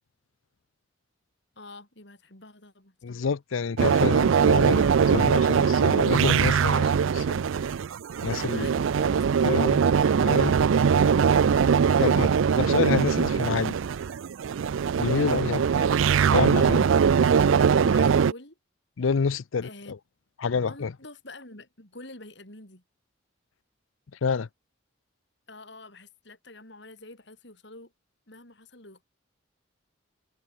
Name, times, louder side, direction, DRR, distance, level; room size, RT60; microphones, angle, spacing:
voice 1, 1.6-3.3 8.4-9.2 11.9-12.2 15.1-15.3 17.2-18.6 19.6-20.0 20.7-22.8 25.5-27.9 28.3-29.0, left 2 dB, 60° left, 5.8 m, -46 dB
voice 2, 3.0-7.4 8.2-8.7 9.4-9.8 10.2-10.6 12.0-12.3 12.6-13.7 15.0-15.9 16.3-16.9 19.0-20.0 20.4-20.9 24.2-24.5, left 5 dB, 80° left, 0.5 m, -28 dB
sound 1, 3.8-18.3, right 6 dB, 80° right, 0.4 m, -21 dB
head